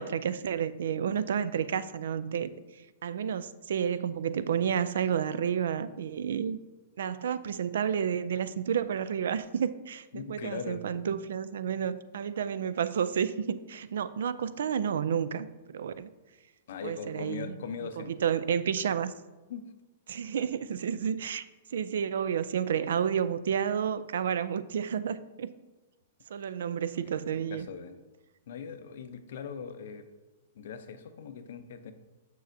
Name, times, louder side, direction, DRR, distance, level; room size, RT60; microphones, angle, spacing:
voice 1, 0.0-2.5 3.0-6.6 7.0-16.1 16.8-17.6 18.0-19.1 20.1-21.4 21.7-25.5 26.3-27.7, right 8 dB, 75° right, 15 dB, 0.3 m, -30 dB
voice 2, 10.1-11.2 16.7-18.1 19.5-19.7 27.5-27.9 28.5-30.1 30.6-31.9, left 6 dB, 70° left, 9 dB, 0.6 m, -40 dB
6.9 x 6.4 x 2.6 m, 1.2 s
hypercardioid pair, 120°, 0 cm